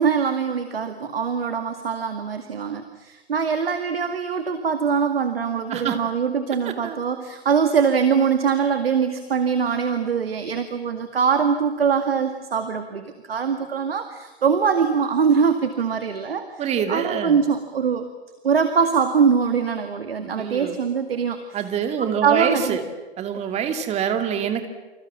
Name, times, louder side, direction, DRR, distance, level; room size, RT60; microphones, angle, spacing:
voice 1, 0.0-18.1 18.4-21.7 22.2-22.8, right 6 dB, 65° right, 8 dB, 2.2 m, -23 dB
voice 2, 6.7-7.0 16.6-17.4 20.2-20.8 21.5-22.8 23.2-24.7, right 8 dB, 20° right, 7 dB, 2.6 m, -25 dB
30.0 x 27.0 x 7.3 m, 1.1 s
figure-of-eight pair, 110°, 32 cm